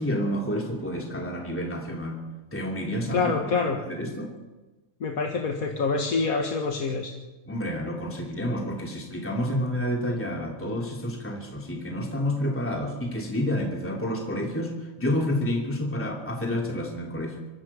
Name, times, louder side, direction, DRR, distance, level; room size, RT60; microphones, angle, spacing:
voice 1, 0.0-2.2 2.5-4.3 7.5-17.4, left 1 dB, 10° left, 0 dB, 2.7 m, -29 dB
voice 2, 3.1-3.8 5.0-7.1, left 4 dB, 80° left, 2 dB, 2.1 m, -26 dB
24.5 x 14.5 x 7.2 m, 1.2 s
omnidirectional pair, 1.5 m